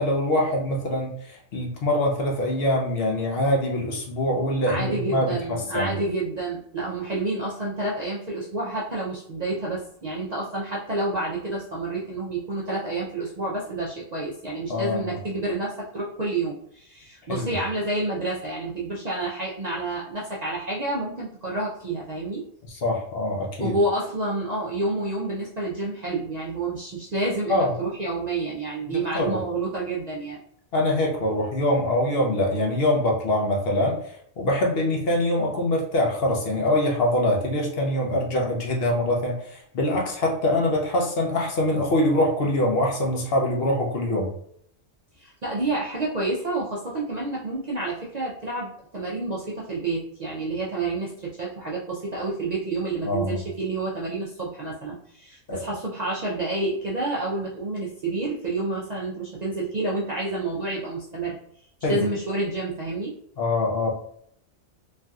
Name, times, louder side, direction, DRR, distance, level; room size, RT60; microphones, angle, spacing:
voice 1, 0.0-5.9 14.7-15.2 17.3-17.5 22.7-23.7 27.5-27.7 28.9-29.4 30.7-34.0 34.4-44.3 53.0-53.4 55.5-55.6 61.8-62.1 63.4-63.9, left 1 dB, 60° left, 0 dB, 0.8 m, -24 dB
voice 2, 4.7-22.4 23.6-30.4 45.2-61.4 61.9-63.1, right 2 dB, 50° right, -5 dB, 0.5 m, -29 dB
3.2 x 2.7 x 2.3 m, 0.69 s
omnidirectional pair, 1.3 m